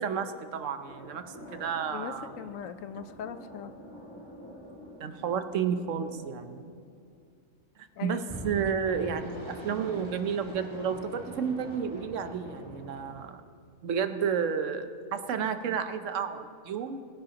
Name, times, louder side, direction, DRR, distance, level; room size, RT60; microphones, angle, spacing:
voice 1, 0.0-2.3 5.0-6.7 8.0-13.4 13.8-17.0, right 7 dB, 75° right, 9 dB, 1.1 m, -31 dB
sound 1, 0.9-7.2 8.2-13.1, equal, 20° left, 2.4 m, -45 dB
voice 2, 1.9-3.7 8.0-8.3, left 8 dB, 90° left, 10 dB, 1.1 m, -40 dB
22.5 x 10.5 x 2.9 m, 2.3 s
omnidirectional pair, 1.3 m